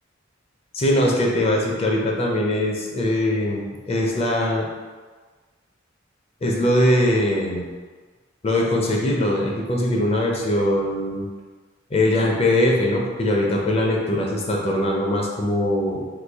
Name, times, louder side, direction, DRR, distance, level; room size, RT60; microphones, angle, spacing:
voice 1, 0.7-4.7 6.4-7.7 8.4-11.3 11.9-16.0, left 1 dB, 30° left, -1 dB, 0.5 m, -21 dB
3.1 x 2.3 x 3.4 m, 1.4 s
head